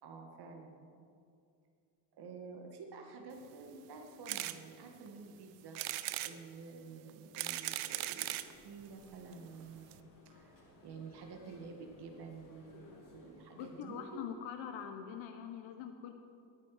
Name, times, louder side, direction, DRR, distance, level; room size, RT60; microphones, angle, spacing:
voice 1, 0.0-1.1 2.1-5.8 6.2-14.3, right 4 dB, 50° right, 3 dB, 2.0 m, -50 dB
sound 1, 4.3-4.6 5.1-5.2 5.7-6.3 7.1-8.5 9.3-9.4 9.6-9.7 9.9-10.0, right 16 dB, 85° right, 0.8 m, -38 dB
sound 2, 8.4-14.3, left 2 dB, 40° left, 3.8 m, -61 dB
voice 2, 13.6-16.1, left 8 dB, 65° left, 6 dB, 1.1 m, -44 dB
20.5 x 9.2 x 5.0 m, 2.4 s
supercardioid pair, 100°, 50 cm